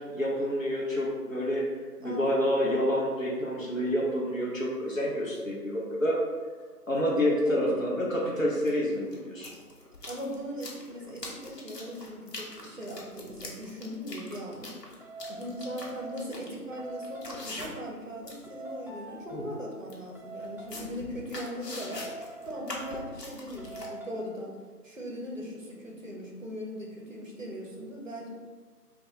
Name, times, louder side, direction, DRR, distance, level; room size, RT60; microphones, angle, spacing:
voice 1, 0.0-1.6 2.0-6.2 6.9-9.5, equal, 55° left, -4 dB, 0.8 m, -28 dB
sound 1, 6.6-6.7 8.7-8.8 9.1-18.0 18.2-18.5 18.9-19.0 19.3-19.5 19.9-20.0 20.4-23.9, left 2 dB, 80° left, 0.9 m, -43 dB
voice 2, 7.5-7.8 10.1-14.7 15.3-22.1 22.4-24.6 24.8-28.3, equal, 55° right, -1 dB, 0.6 m, -39 dB
sound 2, 15.0-16.4 16.7-17.6 18.4-19.7 20.1-20.9 21.9-23.3 23.6-24.3, right 2 dB, 5° right, 0.3 m, -44 dB
3.5 x 2.3 x 3.0 m, 1.4 s
figure-of-eight pair, 175°, 48 cm